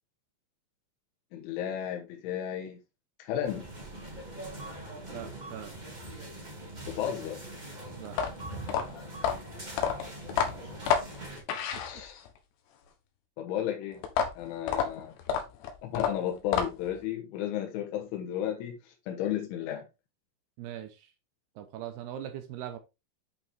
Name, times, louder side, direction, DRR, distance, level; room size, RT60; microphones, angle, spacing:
voice 1, 1.3-2.8 3.2-3.7 6.9-7.4 11.8-12.3 13.4-14.0 14.4-15.1 15.8-19.8, left 10 dB, 90° left, 3.6 m, -33 dB
sound 1, 3.4-11.4, right 1 dB, 50° right, 0.5 m, -42 dB
voice 2, 5.1-5.7 7.9-8.2 10.9-11.0 11.7-11.8 20.6-21.1 21.6-22.8, right 11 dB, 75° right, 2.5 m, -41 dB
sound 2, 8.1-12.4 14.0-17.0, left 7 dB, 70° left, 3.0 m, -30 dB
8.4 x 5.4 x 3.5 m
omnidirectional pair, 5.3 m